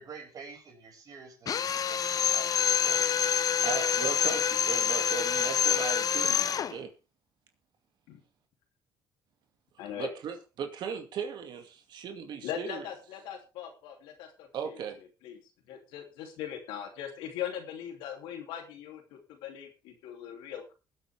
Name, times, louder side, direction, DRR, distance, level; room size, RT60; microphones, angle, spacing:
voice 1, 0.0-2.5 2.8-3.2, right 5 dB, 50° right, 5.9 m, -47 dB
Drill, 1.5-6.8, left 8 dB, 50° left, 0.8 m, -27 dB
voice 2, 3.6-6.9 10.0-12.8 14.5-15.0, right 7 dB, 65° right, 2.3 m, -37 dB
voice 3, 9.8-10.1 12.4-14.8 15.2-15.4 15.7-20.7, left 9 dB, 90° left, 3.0 m, -40 dB
21.0 x 8.2 x 3.5 m
cardioid pair, 85°, 8 cm